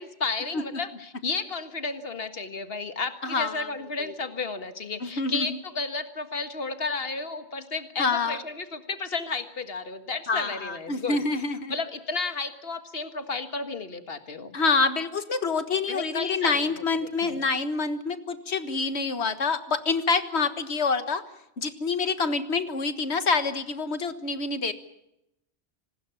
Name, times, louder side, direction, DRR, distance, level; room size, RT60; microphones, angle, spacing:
voice 1, 0.0-11.2 11.7-14.6 15.9-16.7 17.0-17.4, left 4 dB, 65° left, 9 dB, 1.9 m, -32 dB
voice 2, 3.2-3.7 4.0-4.1 5.0-5.5 8.0-8.4 10.3-11.7 14.5-21.2 21.6-24.7, left 4 dB, 85° left, 11 dB, 1.8 m, -27 dB
26.0 x 20.0 x 7.0 m, 0.85 s
omnidirectional pair, 1.1 m